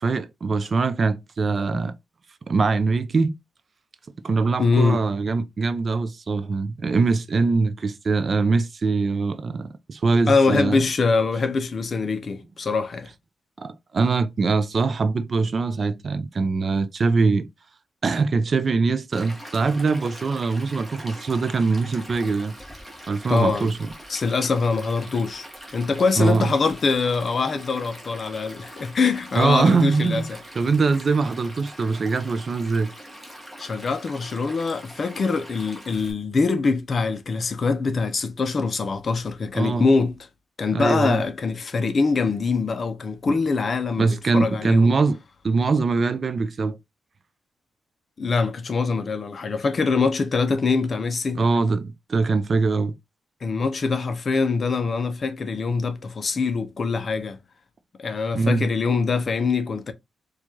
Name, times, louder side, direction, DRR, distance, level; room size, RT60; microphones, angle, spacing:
voice 1, 0.0-1.9 2.5-3.3 4.2-10.8 13.6-17.5 18.0-22.5 23.1-23.9 26.2-26.4 29.3-30.3 30.5-32.9 39.5-39.9 40.7-41.2 44.0-45.2 45.4-46.8 51.4-52.9 58.3-58.7, right 4 dB, 35° right, 0.4 m, -22 dB
voice 2, 4.6-5.0 10.3-13.1 23.3-23.7 24.1-25.5 25.7-30.4 33.6-40.1 40.6-44.9 48.2-51.4 53.4-57.4 58.0-59.9, left 4 dB, 35° left, 0.5 m, -23 dB
Stream, 19.1-36.1, equal, 5° right, 1.1 m, -43 dB
4.6 x 2.3 x 2.7 m
wide cardioid pair, 165°, 0 cm